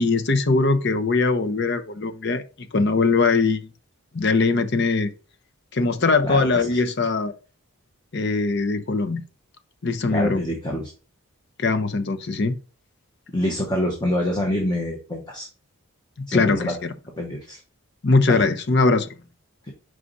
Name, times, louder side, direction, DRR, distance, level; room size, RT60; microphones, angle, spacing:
voice 1, 0.0-2.4 2.7-3.6 4.1-5.1 5.7-7.3 8.1-9.2 9.8-10.4 11.6-12.5 16.2-16.9 18.0-19.1, left 3 dB, 50° left, 0.7 m, -21 dB
voice 2, 6.2-6.6 10.1-10.9 13.3-15.5 16.3-16.7 17.2-17.6 18.3-18.4, left 1 dB, 20° left, 1.2 m, -26 dB
4.9 x 4.8 x 4.0 m
head